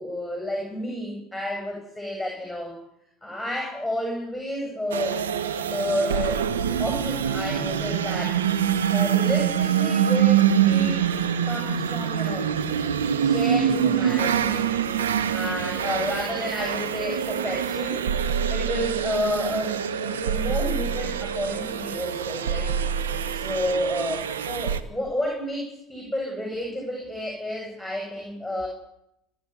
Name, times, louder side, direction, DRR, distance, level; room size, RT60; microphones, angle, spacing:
voice 1, 0.0-2.8 3.2-5.2 5.7-8.4 8.9-11.1 11.4-12.5 13.2-14.7 15.3-18.0 18.4-22.7 23.3-28.7, left 1 dB, ahead, 2 dB, 7.8 m, -31 dB
sound 1, 4.9-24.8, right 8 dB, 80° right, 1.4 m, -25 dB
29.5 x 11.0 x 9.8 m, 0.81 s
hypercardioid pair, 75°, 0 cm